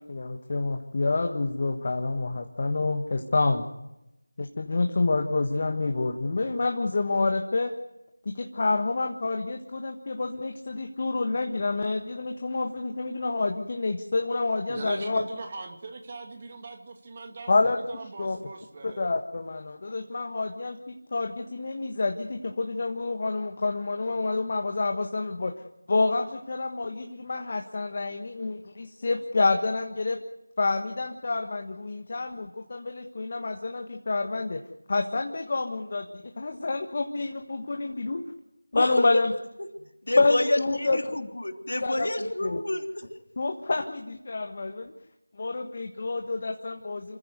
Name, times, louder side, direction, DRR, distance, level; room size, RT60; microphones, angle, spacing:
voice 1, 0.0-3.6 4.4-7.7 8.3-15.2 17.5-17.8 18.2-18.4 18.8-25.5 25.9-30.2 30.6-34.6 34.9-38.2 38.7-39.3 40.1-41.3 41.8-42.1 42.4-42.6 43.4-44.9 45.4-47.2, left 3 dB, 35° left, 1.4 m, -28 dB
voice 2, 14.7-19.1, right 3 dB, 30° right, 2.1 m, -40 dB
voice 3, 38.7-39.3 40.0-43.1, left 1 dB, 70° left, 3.1 m, -28 dB
28.0 x 15.5 x 8.1 m
figure-of-eight pair, 170°, 0 cm